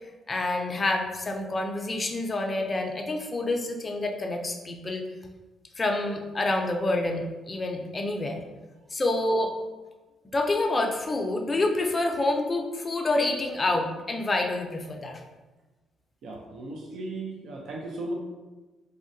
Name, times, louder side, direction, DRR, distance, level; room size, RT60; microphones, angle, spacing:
voice 1, 0.3-5.1 5.8-8.4 8.9-9.5 10.3-15.2, left 2 dB, 30° left, 3 dB, 0.4 m, -27 dB
voice 2, 16.2-18.1, right 2 dB, 70° right, -1 dB, 0.5 m, -36 dB
3.6 x 2.1 x 2.6 m, 1.2 s
cardioid pair, 90°, 0 cm